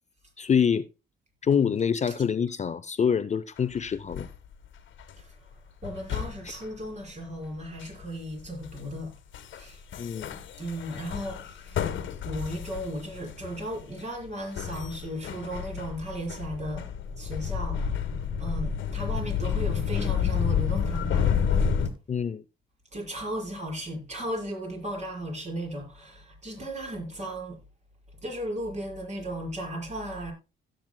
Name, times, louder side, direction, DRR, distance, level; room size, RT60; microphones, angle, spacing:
voice 1, 0.4-0.9 1.4-4.3 7.8-7.9 10.0-10.3 22.1-22.4, left 7 dB, 35° left, 0.6 m, -26 dB
sound 1, 3.6-4.4 4.8-5.1 5.8-6.7 7.8-8.0 8.5-9.0 9.3-9.7 9.9-14.0 14.6-21.9, left 7 dB, 75° left, 1.4 m, -30 dB
voice 2, 5.1-9.1 9.5-9.8 10.6-11.9 12.2-16.9 17.2-21.3 22.9-27.6 28.2-30.3, right 1 dB, 35° right, 5.8 m, -36 dB
16.5 x 7.7 x 2.2 m
cardioid pair, 90°, 20 cm